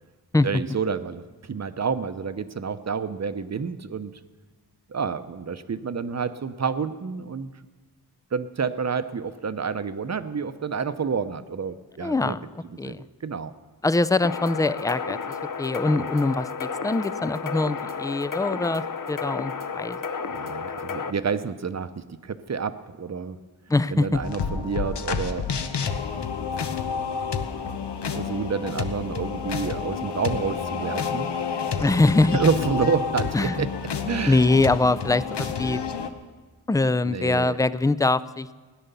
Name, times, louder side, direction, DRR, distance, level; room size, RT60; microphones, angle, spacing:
voice 1, 0.4-1.2 1.5-4.1 4.9-7.5 8.3-12.4 12.8-13.0 13.2-13.5 16.0-16.1 20.3-23.4 23.9-25.4 27.6-27.7 28.1-31.3 32.2-33.7 34.1-34.5 37.0-37.6, right 5 dB, 40° right, 12 dB, 0.8 m, -29 dB
voice 2, 12.0-12.5 12.8-13.0 13.8-15.2 15.6-20.0 23.7-24.2 31.8-32.4 33.3-33.6 34.3-35.8 36.7-38.6, left 2 dB, 10° left, 16 dB, 0.4 m, -23 dB
sound 1, 14.2-21.1, left 5 dB, 50° left, 0.8 m, -32 dB
sound 2, 24.2-36.1, left 6 dB, 75° left, 1.1 m, -29 dB
17.0 x 10.5 x 6.9 m, 1.4 s
wide cardioid pair, 75°, 41 cm